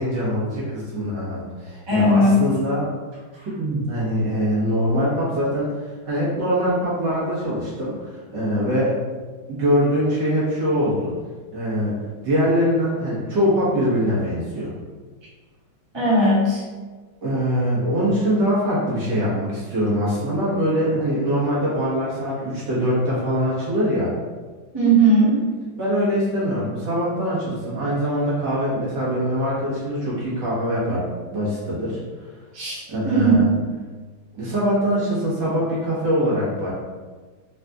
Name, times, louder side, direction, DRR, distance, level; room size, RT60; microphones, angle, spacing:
voice 1, 0.0-2.9 3.6-8.9 9.5-11.1 11.5-11.9 12.2-14.7 17.2-24.1 25.8-32.0 32.9-33.5 34.3-36.7, equal, 60° right, -8 dB, 1.9 m, -23 dB
voice 2, 1.9-2.5 15.9-16.6 24.7-25.4 32.5-33.4, right 1 dB, 20° right, -8 dB, 0.8 m, -17 dB
4.0 x 4.0 x 2.4 m, 1.4 s
omnidirectional pair, 2.2 m